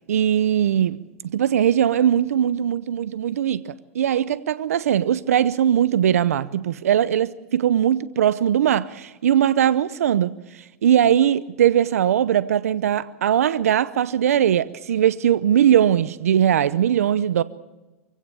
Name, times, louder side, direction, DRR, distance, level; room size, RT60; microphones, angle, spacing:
voice 1, 0.1-1.0 1.2-17.4, right 10 dB, 85° right, 0.7 m, -20 dB
24.0 x 16.5 x 6.9 m
hypercardioid pair, 115°, 8 cm